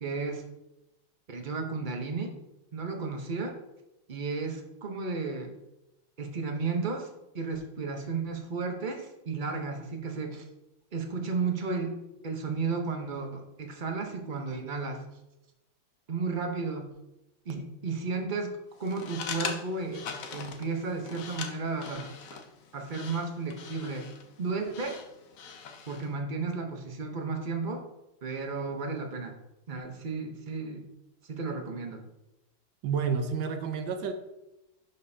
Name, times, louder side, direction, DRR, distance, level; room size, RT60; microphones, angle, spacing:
voice 1, 0.0-0.4 1.3-2.3 2.7-3.6 4.1-5.5 6.2-7.1 7.3-10.5 10.9-12.0 12.2-15.0 16.1-16.9 17.4-20.0 20.3-22.1 22.7-24.1 24.4-25.0 25.9-27.9 28.2-29.3 29.7-30.9 31.2-32.1, right 4 dB, 45° right, 3 dB, 0.6 m, -33 dB
sound 1, 18.8-26.1, left 6 dB, 60° left, 0.9 m, -41 dB
voice 2, 32.8-34.1, right 6 dB, 75° right, 7 dB, 1.5 m, -29 dB
11.0 x 5.3 x 2.8 m, 0.92 s
omnidirectional pair, 2.1 m